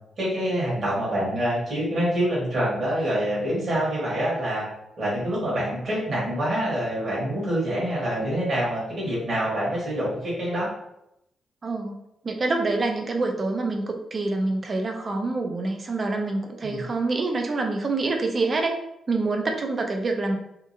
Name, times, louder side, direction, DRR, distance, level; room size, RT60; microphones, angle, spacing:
voice 1, 0.2-4.7 5.0-10.7 16.6-16.8, equal, 55° right, -7 dB, 1.3 m, -26 dB
voice 2, 11.6-12.0 12.2-18.7 19.1-20.4, right 3 dB, 35° right, 3 dB, 0.5 m, -26 dB
2.8 x 2.3 x 2.6 m, 0.80 s
cardioid pair, 100°, 0 cm